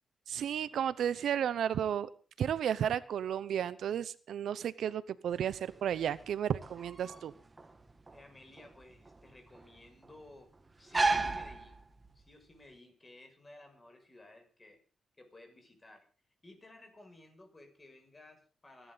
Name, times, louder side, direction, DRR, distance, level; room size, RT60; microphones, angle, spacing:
voice 1, 0.3-2.1 2.4-7.3, right 9 dB, 85° right, 17 dB, 0.8 m, -33 dB
sound 1, 5.3-12.3, right 3 dB, 25° right, 2.0 m, -36 dB
voice 2, 8.1-10.5 10.8-11.8 12.1-14.8 15.2-16.1 16.4-18.9, left 2 dB, 25° left, 5 dB, 6.5 m, -56 dB
27.0 x 11.5 x 4.0 m, 0.37 s
cardioid pair, 85°, 0 cm